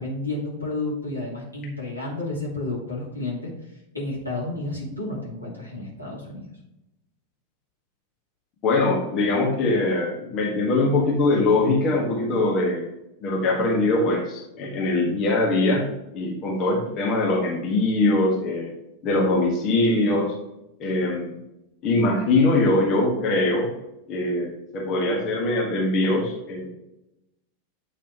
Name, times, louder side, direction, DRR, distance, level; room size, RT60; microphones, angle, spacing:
voice 1, 0.0-3.5 3.9-6.5, left 2 dB, 90° left, -5 dB, 2.5 m, -31 dB
voice 2, 8.6-12.9 13.2-15.9 16.1-18.7 19.0-20.3 20.8-21.3 21.8-23.7 24.1-26.7, left 2 dB, 35° left, 0 dB, 1.6 m, -22 dB
8.8 x 5.8 x 3.0 m, 0.89 s
figure-of-eight pair, 90°, 0 cm